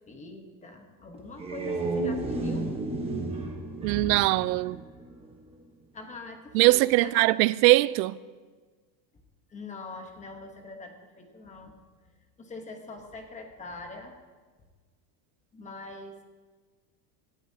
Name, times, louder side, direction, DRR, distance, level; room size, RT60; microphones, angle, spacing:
voice 1, 0.1-2.7 5.9-7.2 9.5-11.7 12.4-14.1 15.5-16.2, left 3 dB, 15° left, 1.0 m, -43 dB
sound 1, 1.2-5.4, right 2 dB, 10° right, 1.1 m, -32 dB
voice 2, 3.8-4.8 6.5-8.2, right 19 dB, 90° right, 0.5 m, -21 dB
18.0 x 14.0 x 2.8 m
cardioid pair, 170°, 50 cm